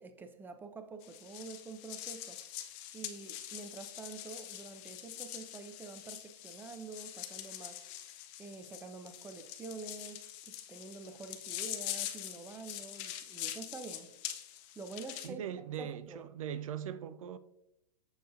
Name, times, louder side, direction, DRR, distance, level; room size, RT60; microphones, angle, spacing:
voice 1, 0.0-2.4 2.9-8.1 8.4-14.1 14.8-15.4 15.8-16.3, right 4 dB, 10° right, 0.5 m, -47 dB
sound 1, 1.0-15.3, left 12 dB, 30° left, 0.6 m, -44 dB
voice 2, 15.2-17.4, right 9 dB, 55° right, 0.5 m, -40 dB
6.8 x 6.6 x 2.5 m
figure-of-eight pair, 115°, 21 cm